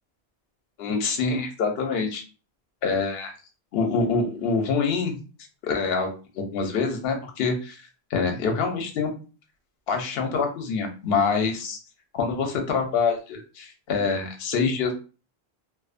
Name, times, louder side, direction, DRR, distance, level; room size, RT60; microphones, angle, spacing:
voice 1, 0.8-2.2 2.8-3.3 3.7-5.2 5.6-9.1 9.9-11.8 12.1-14.9, left 4 dB, 70° left, 4 dB, 0.8 m, -26 dB
2.5 x 2.0 x 2.4 m, 0.34 s
omnidirectional pair, 1.1 m